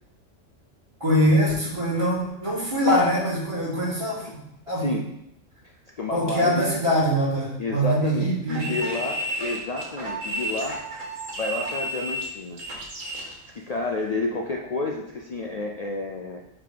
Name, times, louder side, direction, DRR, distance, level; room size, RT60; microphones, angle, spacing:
voice 1, 1.0-4.9 6.1-8.7, equal, 25° right, -7 dB, 2.1 m, -23 dB
voice 2, 4.7-5.1 5.6-6.7 7.6-10.8 11.4-12.6 13.2-16.4, left 2 dB, 65° left, 0 dB, 0.4 m, -30 dB
sound 1, 8.5-13.3, right 1 dB, 85° right, 1.6 m, -32 dB
5.7 x 3.6 x 5.0 m, 0.80 s
omnidirectional pair, 1.3 m